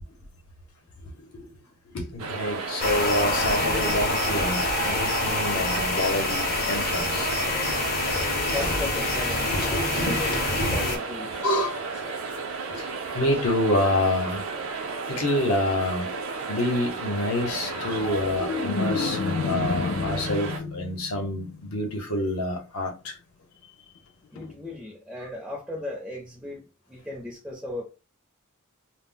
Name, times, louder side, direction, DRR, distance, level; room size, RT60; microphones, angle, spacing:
voice 1, 1.9-7.3 8.0-8.8 9.5-10.8 11.4-11.8 12.8-12.9 13.1-14.4 15.1-16.1 16.5-19.2 19.4-23.1, left 1 dB, 75° left, 0.8 m, -27 dB
sound 1, 2.2-20.6, right 4 dB, 65° right, 0.5 m, -33 dB
sound 2, 2.8-11.0, left 2 dB, 40° left, 0.7 m, -26 dB
voice 2, 8.5-11.3 24.3-27.8, left 2 dB, 5° right, 0.5 m, -36 dB
sound 3, 17.5-22.0 24.4-24.5, left 5 dB, 60° left, 0.3 m, -30 dB
2.1 x 2.0 x 3.7 m
head